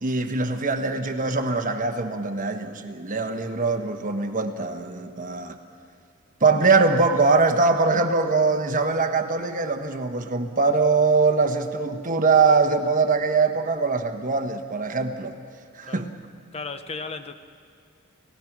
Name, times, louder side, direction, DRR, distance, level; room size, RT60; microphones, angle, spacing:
voice 1, 0.0-5.6 6.4-15.3 15.7-16.1, right 4 dB, 40° right, 7 dB, 1.2 m, -22 dB
voice 2, 16.5-17.3, left 4 dB, 30° left, 9 dB, 0.7 m, -35 dB
29.0 x 16.5 x 6.1 m, 2.2 s
head